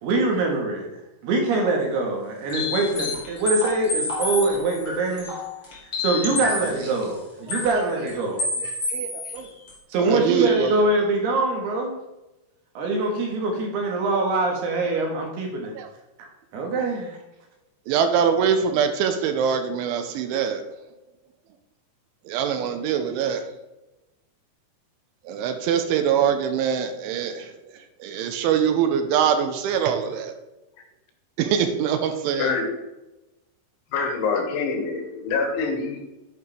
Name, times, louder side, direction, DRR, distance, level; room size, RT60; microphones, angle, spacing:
voice 1, 0.0-0.9 1.2-5.4 5.8-8.7 9.9-12.0 12.7-15.7 16.2-17.2, right 2 dB, 65° right, 1 dB, 3.0 m, -24 dB
sound 1, 2.5-6.9 7.5-7.7 8.1-8.2 8.4-9.4 9.7-9.8, left 2 dB, 40° left, 1.7 m, -28 dB
voice 2, 8.9-9.5 10.0-10.7 15.8-15.9 17.9-20.6 22.3-23.5 25.3-27.5 28.0-30.3 31.4-32.6, right 7 dB, 85° right, 7 dB, 3.1 m, -23 dB
voice 3, 33.9-36.0, left 4 dB, 80° left, 3 dB, 3.7 m, -25 dB
9.5 x 8.5 x 3.3 m, 0.99 s
omnidirectional pair, 5.6 m